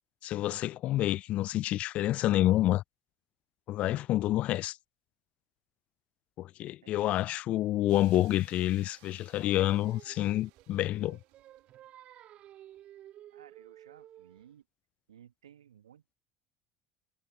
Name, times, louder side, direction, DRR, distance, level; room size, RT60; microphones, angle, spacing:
voice 1, 0.2-2.8 3.7-4.8 6.4-11.2, left 14 dB, 45° left, 0.4 m, -28 dB
voice 2, 6.8-7.2 13.3-14.6 15.1-16.1, right 10 dB, 75° right, 1.3 m, -57 dB
sound 1, 7.9-11.9, right 31 dB, 60° right, 2.5 m, -62 dB
Singing, 9.3-14.5, right 12 dB, 45° right, 2.3 m, -53 dB
figure-of-eight pair, 70°, 3 cm